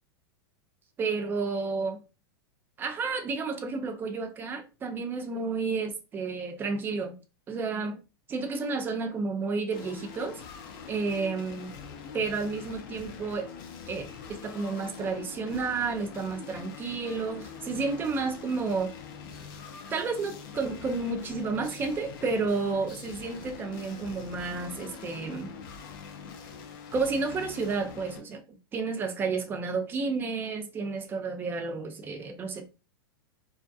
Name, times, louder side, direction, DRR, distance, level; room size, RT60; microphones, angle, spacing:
voice 1, 1.0-2.0 2.8-7.1 7.5-8.0 8.3-10.4 10.9-11.7 12.1-13.5 13.9-18.9 19.9-25.5 26.9-32.6, right 4 dB, 15° right, 0.4 m, -31 dB
sound 1, 9.7-28.2, left 6 dB, 55° left, 0.5 m, -44 dB
2.3 x 2.1 x 2.5 m
supercardioid pair, 140°, 13 cm